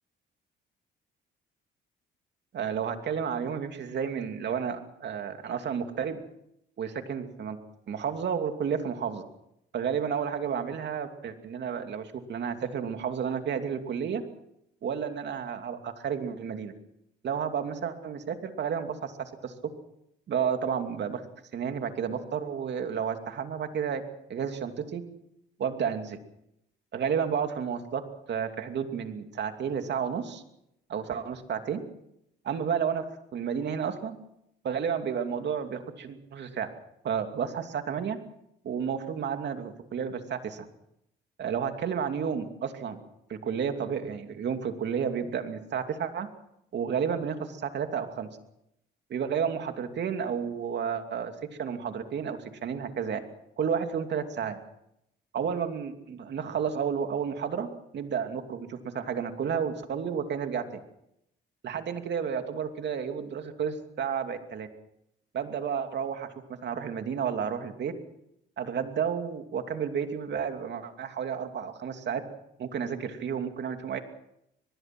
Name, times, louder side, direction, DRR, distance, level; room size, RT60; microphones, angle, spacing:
voice 1, 2.5-6.2 6.8-7.6 7.9-9.2 9.7-14.2 14.8-16.7 17.2-19.5 20.3-21.2 21.5-24.0 24.3-25.0 25.6-26.2 26.9-28.0 28.3-30.4 30.9-31.8 32.4-33.0 33.3-34.2 34.6-36.7 37.0-38.2 38.6-40.6 41.4-43.0 43.3-46.3 46.7-48.3 49.1-51.3 51.6-53.2 53.6-54.6 55.3-57.7 57.9-60.8 61.6-64.7 65.3-66.3 66.6-67.9 68.6-72.2 72.6-74.0, right 7 dB, 60° right, 6 dB, 2.7 m, -31 dB
23.5 x 21.0 x 6.1 m, 0.80 s
cardioid pair, 90°, 20 cm